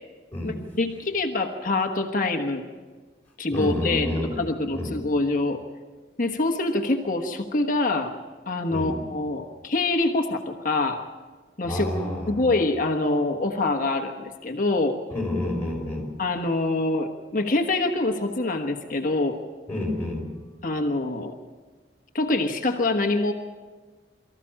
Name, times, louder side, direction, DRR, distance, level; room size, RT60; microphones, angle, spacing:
voice 1, 0.4-2.6 3.4-5.6 6.2-8.1 8.5-11.0 11.6-11.9 12.3-15.0 16.2-19.4 20.6-21.3 22.1-23.3, left 2 dB, 50° left, 4 dB, 1.3 m, -25 dB
voice 2, 3.5-4.3 4.7-4.9 8.7-8.9 11.6-12.4 15.1-16.1 19.7-20.2, left 1 dB, 10° left, -3 dB, 5.7 m, -28 dB
24.0 x 14.5 x 7.6 m, 1.4 s
head